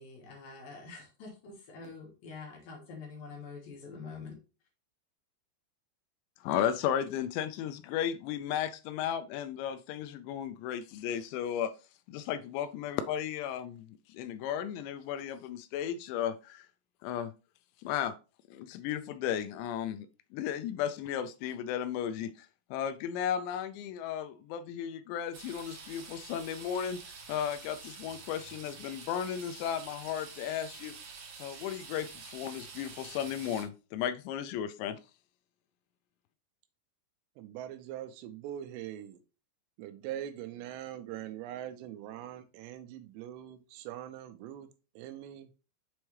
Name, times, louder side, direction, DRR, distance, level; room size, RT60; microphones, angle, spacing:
voice 1, 0.0-4.3, left 4 dB, 65° left, 1 dB, 2.9 m, -46 dB
voice 2, 6.4-11.7 12.1-16.7 17.0-17.3 17.8-18.1 18.5-20.1 20.3-27.0 27.3-30.9 31.4-35.0, left 9 dB, 85° left, 11 dB, 2.7 m, -35 dB
sound 1, 25.3-33.6, right 5 dB, 65° right, 1.7 m, -48 dB
voice 3, 37.4-39.2 39.8-44.7 45.0-45.5, right 11 dB, 85° right, 9 dB, 2.7 m, -42 dB
7.1 x 4.5 x 3.2 m, 0.32 s
omnidirectional pair, 5.1 m